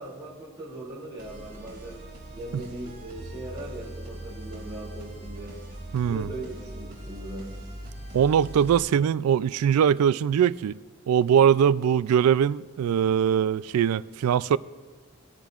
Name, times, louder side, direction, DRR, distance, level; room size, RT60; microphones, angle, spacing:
voice 1, 0.0-2.0 2.3-5.6 6.1-7.5, right 1 dB, 20° right, -6 dB, 2.7 m, -39 dB
sound 1, 1.2-8.8, right 1 dB, 40° right, 2.5 m, -41 dB
voice 2, 5.9-6.3 8.1-10.8 11.1-14.6, right 8 dB, 85° right, 18 dB, 0.3 m, -22 dB
18.5 x 10.5 x 2.5 m, 1.5 s
head